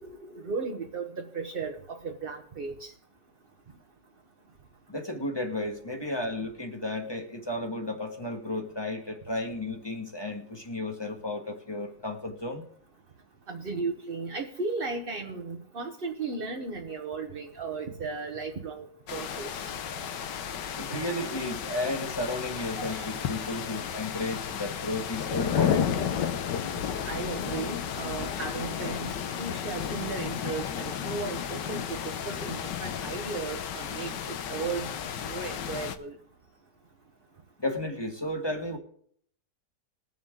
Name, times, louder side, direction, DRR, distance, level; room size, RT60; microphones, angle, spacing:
voice 1, 0.0-2.9 13.5-19.7 22.8-23.2 27.0-34.9 35.3-36.2, right 4 dB, 35° right, 2 dB, 1.1 m, -36 dB
voice 2, 4.9-12.6 20.8-26.1 37.6-38.8, left 2 dB, 15° left, 3 dB, 1.5 m, -33 dB
sound 1, 19.1-36.0, left 8 dB, 85° left, 1.5 m, -33 dB
21.0 x 7.3 x 3.7 m, 0.62 s
omnidirectional pair, 1.8 m